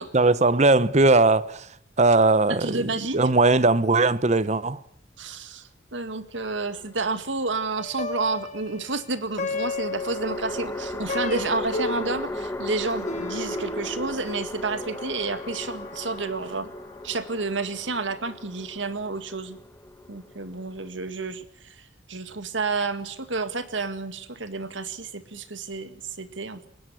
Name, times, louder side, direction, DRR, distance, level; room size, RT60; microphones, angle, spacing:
voice 1, 0.1-4.8, right 3 dB, 35° right, 0.9 m, -20 dB
voice 2, 2.5-3.2 5.2-16.7 17.0-19.6 20.1-26.7, right 3 dB, 80° right, 2.0 m, -30 dB
sound 1, 6.4-7.3 9.5-20.9, left 1 dB, 15° left, 1.2 m, -36 dB
Plucked string instrument, 7.8-17.2, left 3 dB, 40° left, 2.1 m, -35 dB
20.5 x 17.0 x 9.7 m
head